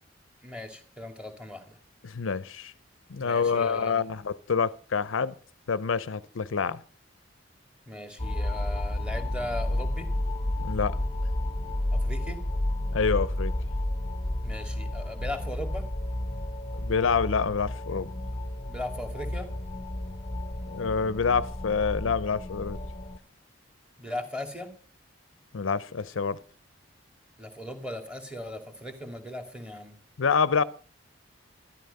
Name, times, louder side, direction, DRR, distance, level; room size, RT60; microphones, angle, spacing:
voice 1, 0.4-1.7 3.2-4.0 7.9-10.1 11.9-12.4 14.4-15.8 18.7-19.5 24.0-24.7 27.4-29.9, left 1 dB, 5° right, 2.4 m, -38 dB
voice 2, 2.0-2.7 3.1-5.3 5.7-6.8 10.6-11.0 12.9-13.5 16.7-18.1 20.7-22.8 25.5-26.4 30.2-30.6, left 5 dB, 80° left, 0.6 m, -27 dB
sound 1, 8.2-23.2, left 1 dB, 30° left, 1.0 m, -31 dB
13.0 x 12.5 x 5.4 m
head